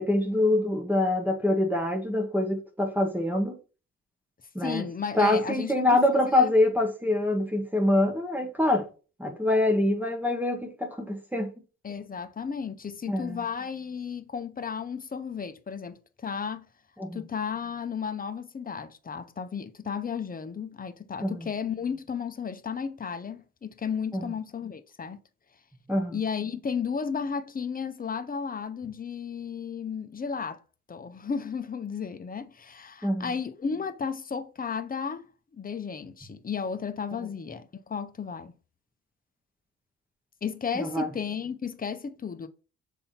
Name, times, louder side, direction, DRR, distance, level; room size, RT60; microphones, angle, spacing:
voice 1, 0.0-3.6 4.6-4.9 5.1-8.8 9.2-11.5 13.1-13.4 17.0-17.3 21.2-21.5 24.1-24.3 25.9-26.2 33.0-33.3 40.8-41.1, left 1 dB, 5° right, 1.7 m, -25 dB
voice 2, 4.6-6.0 6.3-6.5 11.8-16.6 17.1-25.2 26.1-30.6 30.9-35.3 35.5-38.5 40.4-42.5, left 6 dB, 30° left, 0.8 m, -33 dB
6.9 x 3.7 x 4.3 m
cardioid pair, 90°, 30 cm